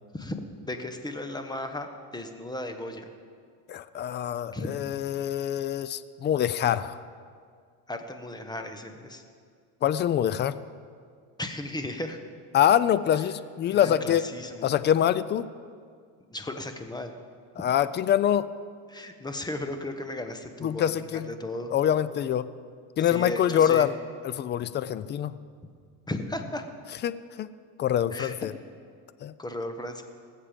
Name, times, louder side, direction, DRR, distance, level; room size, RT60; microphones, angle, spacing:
voice 1, 0.7-3.1 4.5-4.7 6.6-6.8 7.9-9.2 11.4-12.2 13.7-14.7 16.3-17.2 18.9-21.7 23.0-23.9 26.1-26.6 28.1-28.3 29.4-30.0, left 1 dB, 10° left, 6 dB, 1.0 m, -35 dB
voice 2, 3.7-7.0 9.8-10.5 12.5-14.3 14.6-15.5 17.6-18.5 20.6-21.3 21.7-22.5 23.0-23.9 24.2-25.4 27.0-27.5 27.8-28.5 29.2-29.3, left 10 dB, 30° left, 15 dB, 0.4 m, -25 dB
19.5 x 7.6 x 5.1 m, 2.1 s
supercardioid pair, 110°, 40 cm